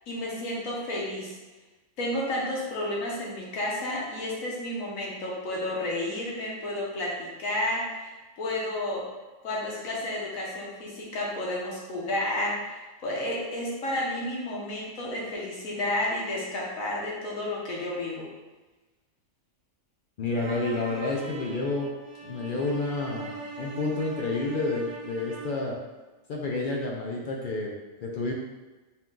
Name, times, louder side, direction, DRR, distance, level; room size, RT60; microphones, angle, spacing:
voice 1, 0.1-1.4 2.0-8.1 8.4-9.0 9.4-18.3, left 1 dB, 85° left, -4 dB, 1.4 m, -31 dB
voice 2, 20.2-21.9 22.2-25.8 26.3-27.7 28.0-28.3, left 3 dB, 65° left, -1 dB, 0.5 m, -30 dB
sound 1, 20.3-25.7, right 3 dB, 55° right, 0.8 m, -40 dB
4.4 x 2.3 x 3.7 m, 1.2 s
omnidirectional pair, 1.4 m